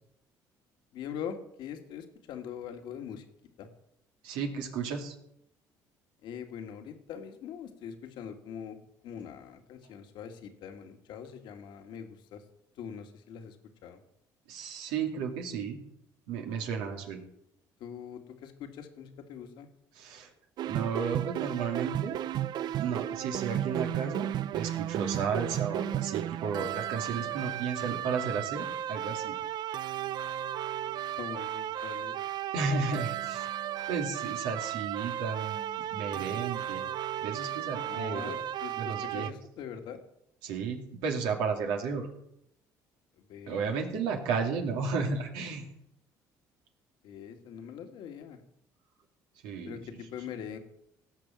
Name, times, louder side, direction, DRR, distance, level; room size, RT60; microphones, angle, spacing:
voice 1, 0.9-3.3 3.6-3.7 6.2-8.8 9.0-12.4 12.8-13.6 13.8-14.0 17.8-19.7 31.2-32.2 37.9-40.0 43.3-44.1 47.0-48.4 49.7-50.6, left 8 dB, 75° left, 6 dB, 1.9 m, -42 dB
voice 2, 4.2-5.1 14.5-15.8 16.3-17.2 19.9-20.3 20.6-22.2 22.8-29.3 32.5-33.5 33.9-36.8 37.2-38.3 38.8-39.3 40.4-42.1 43.5-45.6 49.4-49.8, right 5 dB, 85° right, 2 dB, 2.6 m, -33 dB
sound 1, 20.6-39.3, right 11 dB, 65° right, 0.5 m, -34 dB
17.5 x 6.3 x 7.5 m, 0.77 s
supercardioid pair, 80°, 8 cm